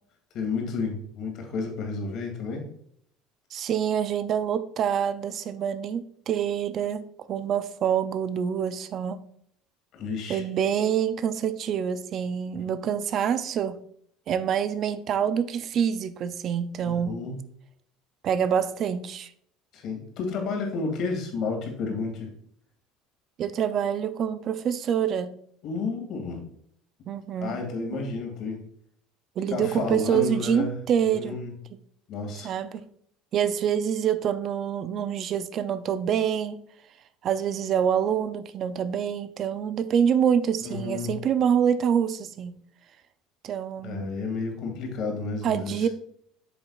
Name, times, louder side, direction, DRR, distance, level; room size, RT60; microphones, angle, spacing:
voice 1, 0.3-2.7 9.9-10.4 16.8-17.4 19.7-22.3 25.6-26.5 27.4-28.6 29.5-30.7 31.1-31.5 32.1-32.5 40.6-41.1 43.8-45.9, left 4 dB, 55° left, 2.3 m, -31 dB
voice 2, 3.5-7.0 7.3-9.2 10.3-13.8 14.3-17.2 18.2-19.3 23.4-25.3 27.1-27.6 29.4-31.3 32.4-32.9 33.3-36.6 37.2-42.6 43.4-44.1 45.4-45.9, right 8 dB, 45° right, 0.4 m, -26 dB
8.1 x 6.8 x 2.4 m
cardioid pair, 120°, 0 cm